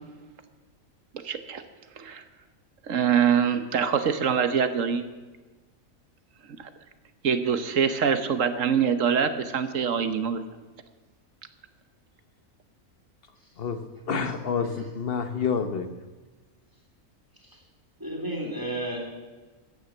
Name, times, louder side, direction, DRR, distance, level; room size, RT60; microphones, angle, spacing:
voice 1, 1.1-1.6 2.0-2.2 2.8-5.1 6.5-6.7 7.2-10.4, right 7 dB, 70° right, 10 dB, 1.4 m, -24 dB
voice 2, 13.6-15.9, left 6 dB, 45° left, 10 dB, 1.2 m, -28 dB
voice 3, 18.0-19.0, right 1 dB, 15° right, -1 dB, 3.0 m, -32 dB
14.5 x 9.7 x 7.2 m, 1.3 s
omnidirectional pair, 1.4 m